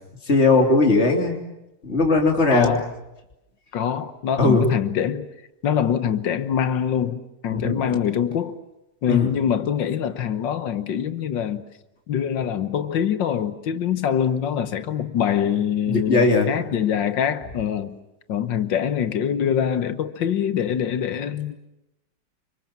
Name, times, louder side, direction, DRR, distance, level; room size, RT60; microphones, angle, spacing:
voice 1, 0.3-1.4 1.8-2.8 4.4-4.7 7.5-7.7 9.1-9.3 15.9-16.5, left 3 dB, 35° left, 3.5 m, -18 dB
voice 2, 2.5-2.9 3.7-5.3 5.6-8.6 9.0-11.7 12.1-17.9 18.3-21.6, left 8 dB, 85° left, 1.9 m, -24 dB
28.5 x 25.5 x 7.4 m
omnidirectional pair, 1.9 m